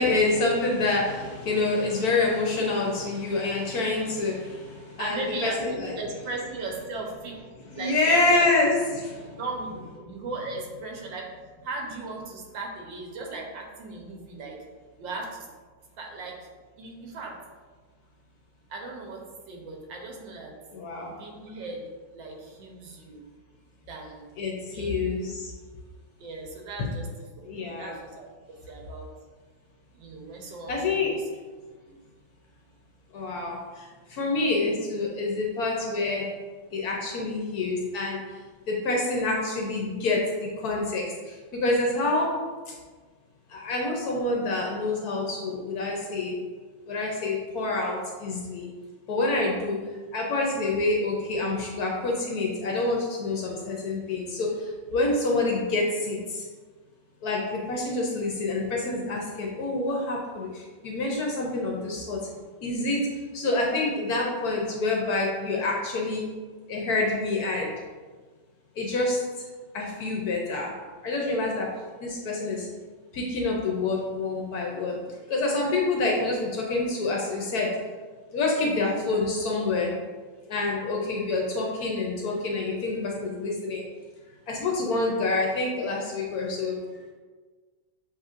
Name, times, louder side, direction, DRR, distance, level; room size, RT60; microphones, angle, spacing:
voice 1, 0.0-6.0 7.7-9.2 20.7-21.1 24.4-25.5 27.5-27.9 30.7-31.1 33.1-33.6 34.1-36.3 36.7-38.2 38.7-42.3 43.5-46.3 46.9-48.7 49.1-49.8 50.1-54.5 54.9-56.5 57.2-62.2 62.6-63.1 63.3-66.2 66.7-67.7 68.8-69.2 69.7-70.7 71.0-71.7 72.0-72.7 73.1-75.0 75.3-77.7 78.3-79.9 80.5-83.8 84.5-86.7, left 2 dB, 65° left, -1 dB, 1.1 m, -27 dB
voice 2, 5.0-7.4 7.7-8.5 9.0-11.3 11.6-14.6 15.0-15.5 16.0-16.5 16.8-17.4 18.7-20.6 21.1-23.2 23.9-24.3 24.7-25.0 26.2-27.1 27.4-28.3 28.7-29.1 29.9-31.2 31.9-32.0, right 3 dB, 85° right, 0 dB, 1.6 m, -37 dB
7.2 x 3.0 x 2.5 m, 1.4 s
omnidirectional pair, 2.0 m